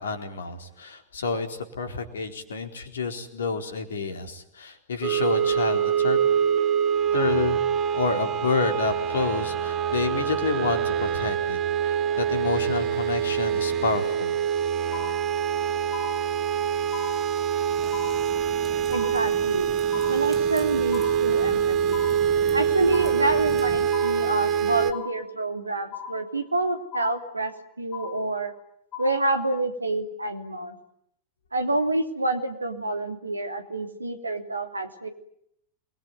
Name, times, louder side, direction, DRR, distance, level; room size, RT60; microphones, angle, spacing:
voice 1, 0.0-6.2 7.1-7.6 7.9-14.4, left 4 dB, 65° left, 6 dB, 4.1 m, -29 dB
sound 1, 5.0-24.9, right 8 dB, 30° right, 2.6 m, -25 dB
sound 2, 14.9-15.6 15.9-16.6 16.9-17.6 17.9-18.6 18.9-19.6 19.9-20.6 20.9-21.6 21.9-22.6 22.9-23.6 23.9-24.6 24.9-25.6 25.9-26.6 26.9-27.6 27.9-28.6 28.9-29.6, left 8 dB, 30° left, 3.7 m, -40 dB
sound 3, 17.7-23.9, right 3 dB, 10° right, 3.4 m, -44 dB
voice 2, 18.9-19.7 20.1-22.0 22.5-27.5 27.8-28.5 29.0-30.7 31.5-35.1, right 2 dB, 80° right, 7 dB, 3.1 m, -28 dB
28.5 x 21.5 x 9.6 m, 0.73 s
figure-of-eight pair, 90°, 0 cm